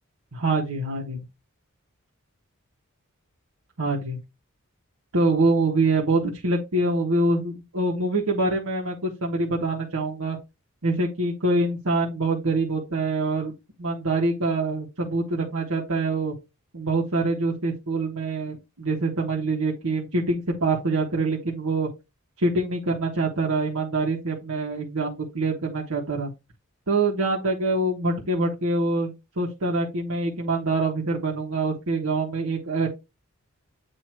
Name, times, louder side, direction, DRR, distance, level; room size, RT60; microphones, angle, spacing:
voice 1, 0.3-1.2 3.8-4.2 5.1-10.4 10.8-13.5 13.8-16.3 16.7-21.9 22.4-26.3 26.9-32.9, right 2 dB, 80° right, 1.3 m, -25 dB
7.8 x 2.8 x 4.4 m
head